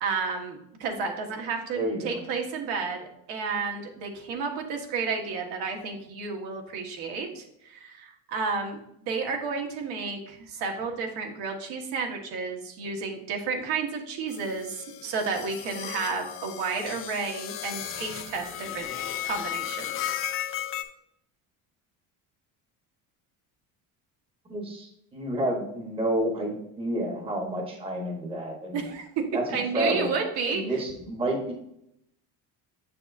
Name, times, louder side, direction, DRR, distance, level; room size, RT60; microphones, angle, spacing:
voice 1, 0.0-3.0 3.3-18.9 19.2-20.1 28.7-29.2 29.5-30.8, right 5 dB, 75° right, 2 dB, 1.5 m, -31 dB
voice 2, 1.7-2.2 24.5-28.8 29.3-30.1 30.5-31.5, right 1 dB, 15° right, 2 dB, 1.0 m, -30 dB
sound 1, 14.3-20.8, left 11 dB, 35° left, 0.4 m, -35 dB
7.0 x 6.8 x 2.5 m, 0.75 s
cardioid pair, 160°, 40 cm